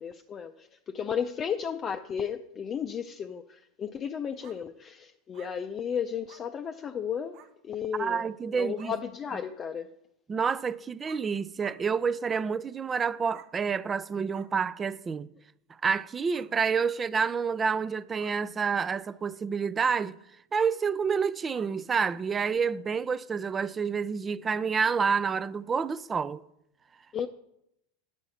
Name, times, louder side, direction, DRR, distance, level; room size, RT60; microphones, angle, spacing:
voice 1, 0.0-7.4 7.6-8.3 8.5-9.9 27.1-27.3, left 7 dB, 30° left, 0.5 m, -34 dB
sound 1, 4.4-4.6 5.3-5.5 6.3-6.4 7.3-7.5 8.4-8.5 8.8-8.9 10.6-10.7 11.1-11.2 11.6-11.8 12.3-12.5 13.3-13.5 14.3-14.5 16.3-16.5 17.2-17.4 18.2-18.4 18.7-18.9 19.9-20.1 20.6-20.8 21.5-21.7 23.1-23.2, right 10 dB, 55° right, 0.8 m, -52 dB
voice 2, 8.0-8.9 10.3-15.3 15.8-20.2 20.5-26.4, right 6 dB, 25° right, 0.4 m, -28 dB
9.7 x 6.4 x 5.6 m
hypercardioid pair, 100°, 0 cm